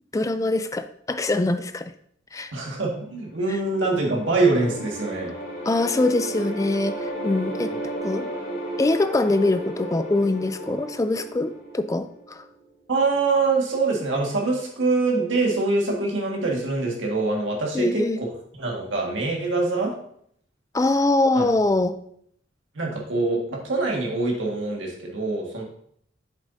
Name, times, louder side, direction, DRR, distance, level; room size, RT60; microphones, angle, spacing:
voice 1, 0.1-1.9 2.3-2.5 5.7-7.7 8.0-8.3 8.8-12.4 17.7-18.2 20.7-21.9, left 2 dB, 15° left, 11 dB, 0.3 m, -23 dB
voice 2, 2.5-5.3 12.9-18.3 18.6-19.9 21.3-21.5 22.7-25.6, right 3 dB, 75° right, -1 dB, 1.8 m, -24 dB
sound 1, 3.3-12.5, equal, 75° left, 2.9 m, -34 dB
8.0 x 7.1 x 2.7 m, 0.66 s
head